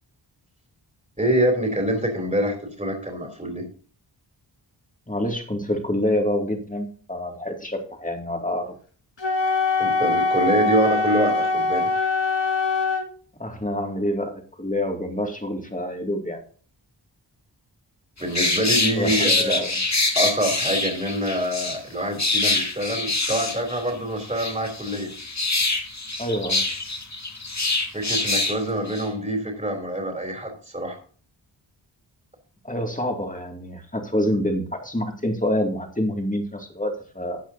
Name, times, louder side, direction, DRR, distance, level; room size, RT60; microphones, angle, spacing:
voice 1, 1.2-3.6 9.8-11.9 18.2-19.6 20.1-25.1 27.9-31.0, right 1 dB, 15° right, 1 dB, 3.3 m, -25 dB
voice 2, 5.1-8.7 13.4-16.4 18.9-19.8 26.2-26.6 32.6-37.4, left 1 dB, 15° left, 3 dB, 2.4 m, -27 dB
Wind instrument woodwind instrument, 9.2-13.1, left 3 dB, 70° left, 1.6 m, -22 dB
sound 1, 18.2-21.8 22.2-23.9 24.2-28.6 28.9-29.1, left 2 dB, 35° left, 2.0 m, -25 dB
14.0 x 8.5 x 2.8 m, 0.42 s
wide cardioid pair, 50°, 45 cm